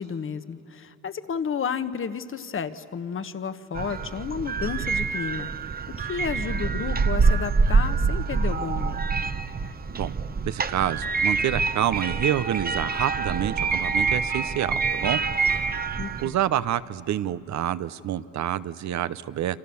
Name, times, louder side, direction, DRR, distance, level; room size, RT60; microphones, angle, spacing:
voice 1, 0.0-5.5 5.9-9.0 16.0-16.4, left 6 dB, 45° left, 12 dB, 1.3 m, -32 dB
sound 1, 3.7-16.3, right 4 dB, 30° right, 1.0 m, -26 dB
voice 2, 10.5-15.8 16.2-19.6, right 11 dB, 65° right, 15 dB, 0.9 m, -28 dB
28.5 x 26.0 x 7.1 m, 2.9 s
cardioid pair, 90°, 30 cm